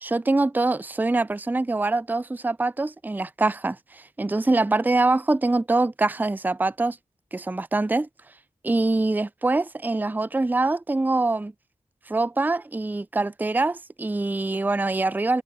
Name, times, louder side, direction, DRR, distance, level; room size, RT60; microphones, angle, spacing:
voice 1, 0.0-7.0 7.3-8.1 8.6-11.5 12.1-15.4, right 2 dB, 15° right, 0.4 m, -24 dB
cardioid pair, 40°, 13 cm